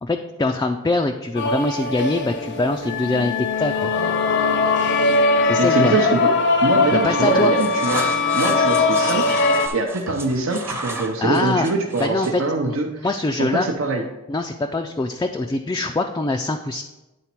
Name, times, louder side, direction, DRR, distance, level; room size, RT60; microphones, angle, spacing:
voice 1, 0.0-3.9 5.5-5.9 6.9-7.5 11.2-11.7 12.0-12.4 12.7-13.7 14.3-16.8, left 2 dB, 20° left, 4 dB, 0.3 m, -23 dB
sound 1, 1.4-9.7, left 3 dB, 55° left, 0.6 m, -20 dB
voice 2, 5.6-6.3 6.6-12.9 13.4-14.0, right 3 dB, 70° right, 2 dB, 0.7 m, -23 dB
sound 2, 7.1-12.4, right 2 dB, 10° right, 0.7 m, -33 dB
9.6 x 4.0 x 4.5 m, 1.0 s
head